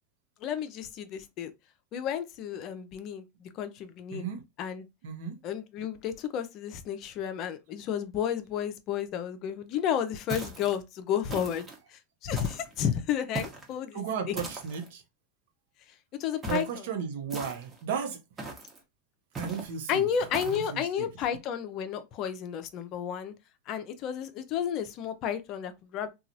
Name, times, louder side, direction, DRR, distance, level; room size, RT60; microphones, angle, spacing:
voice 1, 0.4-1.5 1.9-4.3 4.6-4.9 5.4-14.0 14.3-14.4 16.2-16.8 19.9-23.3 23.7-26.1, left 9 dB, 50° left, 0.5 m, -32 dB
voice 2, 4.1-4.4 5.0-5.4 13.9-15.0 16.5-18.2 19.4-20.0 20.5-21.1, right 7 dB, 70° right, 0.7 m, -34 dB
sound 1, 10.3-10.8 11.3-11.8 12.3-12.8 13.3-13.7 14.4-14.9 16.4-16.8 17.3-17.8 18.4-18.8 19.3-19.7 20.3-20.7, right 3 dB, 25° right, 1.0 m, -39 dB
2.9 x 2.3 x 2.6 m
hypercardioid pair, 95°, 0 cm